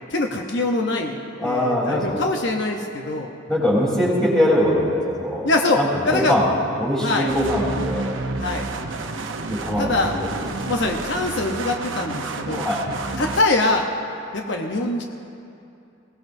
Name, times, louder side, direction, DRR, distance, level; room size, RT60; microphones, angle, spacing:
voice 1, 0.1-3.3 5.4-6.4 7.0-7.3 8.4-8.7 9.8-10.1 10.6-12.6 13.2-13.9 14.3-15.0, left 2 dB, 65° left, 2 dB, 0.9 m, -23 dB
voice 2, 1.4-2.2 3.5-5.5 5.8-6.5 6.8-8.1 9.5-10.0 10.6-10.7 12.5-12.8, left 1 dB, 5° left, -6 dB, 3.6 m, -22 dB
sound 1, 7.3-13.4, right 3 dB, 80° right, 0.8 m, -30 dB
21.0 x 17.5 x 2.7 m, 2.6 s
head